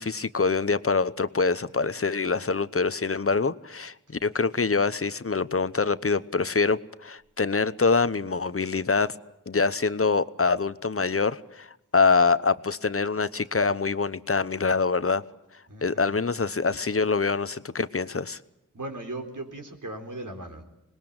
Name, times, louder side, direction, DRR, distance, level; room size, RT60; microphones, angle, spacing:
voice 1, 0.0-3.9 4.2-9.2 9.5-15.2 15.8-18.4, left 4 dB, 45° left, 1.0 m, -25 dB
voice 2, 15.7-16.2 18.7-20.6, right 2 dB, 75° right, 4.3 m, -38 dB
26.0 x 20.5 x 8.8 m
wide cardioid pair, 65°, 31 cm